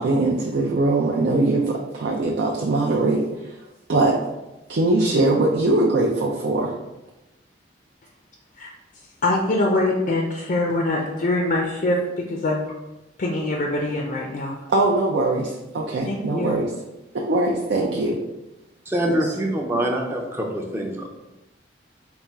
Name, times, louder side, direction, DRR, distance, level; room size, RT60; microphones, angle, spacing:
voice 1, 0.0-3.6 3.9-4.2 4.7-6.7 14.7-16.7 17.1-18.2 19.1-19.3, right 2 dB, 70° right, -2 dB, 0.5 m, -21 dB
voice 2, 9.2-12.7 13.2-14.6 16.1-16.6, left 2 dB, 45° left, 0 dB, 0.4 m, -23 dB
voice 3, 18.9-21.1, right 1 dB, 15° right, 1 dB, 0.5 m, -24 dB
4.2 x 2.4 x 3.4 m, 0.98 s
head